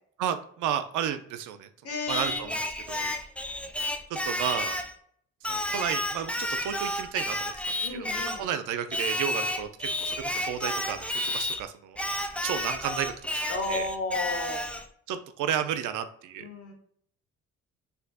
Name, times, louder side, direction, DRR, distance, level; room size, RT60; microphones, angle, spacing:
voice 1, 0.2-1.7 2.1-2.6 2.9-3.1 4.1-4.8 5.5-12.0 12.4-13.1 13.4-13.8 15.1-16.5, right 9 dB, 80° right, 9 dB, 0.5 m, -32 dB
voice 2, 1.8-2.5 7.8-8.5 13.5-14.7 16.4-16.7, left 3 dB, 50° left, 1 dB, 1.3 m, -33 dB
Singing, 2.1-4.9 5.4-8.5 8.9-11.6 12.0-14.9, left 1 dB, 5° left, 0.3 m, -31 dB
4.2 x 2.7 x 2.4 m, 0.64 s
cardioid pair, 90°, 30 cm